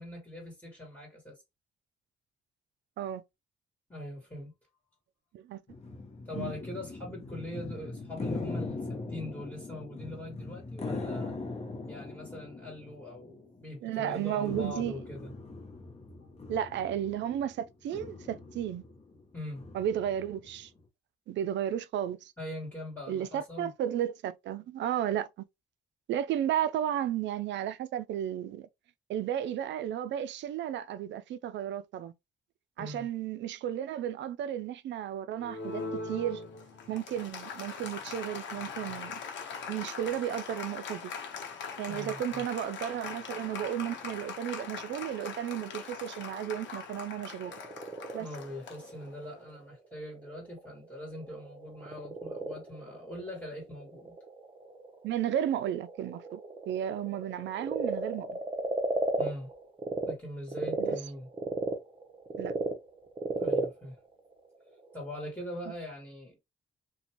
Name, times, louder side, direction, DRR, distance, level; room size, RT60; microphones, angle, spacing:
voice 1, 0.0-1.4 3.9-4.5 6.2-11.3 11.9-15.3 19.3-19.6 22.4-23.7 32.8-33.1 41.9-42.4 48.2-54.1 59.2-59.5 60.0-61.3 63.4-64.0 64.9-66.4, left 1 dB, 10° left, 1.4 m, -42 dB
sound 1, 5.7-13.8 14.1-20.8, left 3 dB, 30° left, 0.8 m, -41 dB
voice 2, 13.8-14.9 16.5-18.8 19.7-20.7 21.3-22.3 23.1-25.3 26.1-28.7 29.1-32.1 32.8-36.4 36.9-39.2 39.6-41.1 41.8-47.5 48.1-48.3 55.0-56.4 56.7-58.4 60.8-61.0 62.4-62.5, right 10 dB, 65° right, 0.4 m, -33 dB
Applause, 35.4-49.4, left 5 dB, 70° left, 0.8 m, -41 dB
Frog, 47.3-60.1 60.5-65.1, right 3 dB, 25° right, 0.7 m, -36 dB
2.5 x 2.2 x 2.9 m
cardioid pair, 90°, 20 cm